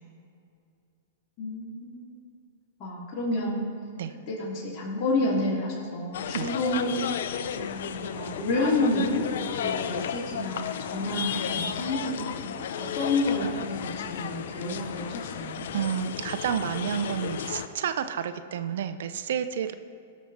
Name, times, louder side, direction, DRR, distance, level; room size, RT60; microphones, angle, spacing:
voice 1, 1.4-2.1 2.8-3.7 4.3-7.0 7.5-15.6, left 2 dB, 35° left, -6 dB, 3.0 m, -29 dB
sound 1, 6.1-17.7, left 8 dB, 70° left, 0.6 m, -33 dB
voice 2, 15.7-19.7, right 8 dB, 70° right, 11 dB, 0.6 m, -30 dB
18.0 x 6.3 x 4.3 m, 2.5 s
hypercardioid pair, 120°, 0 cm